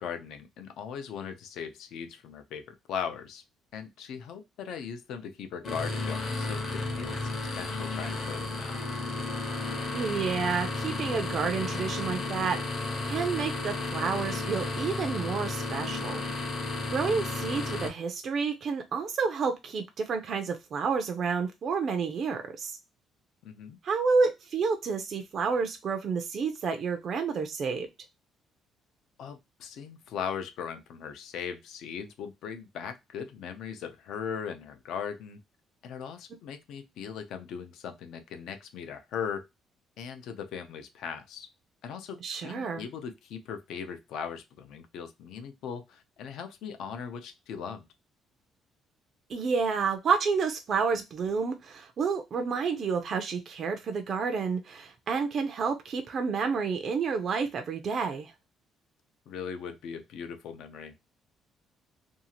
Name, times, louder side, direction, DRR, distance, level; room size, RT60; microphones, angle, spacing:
voice 1, 0.0-3.4 3.7-7.3 7.6-8.8 23.4-23.8 29.2-35.4 35.8-39.4 40.0-41.5 41.8-47.9 59.3-60.9, left 7 dB, 65° left, 7 dB, 0.5 m, -39 dB
sound 1, 5.6-17.9, left 3 dB, 40° left, 0.8 m, -33 dB
voice 2, 9.9-16.2 16.9-22.7 23.8-27.9 42.2-42.8 49.3-58.3, right 5 dB, 40° right, 5 dB, 0.4 m, -30 dB
2.6 x 2.4 x 2.8 m, 0.22 s
cardioid pair, 160°, 0 cm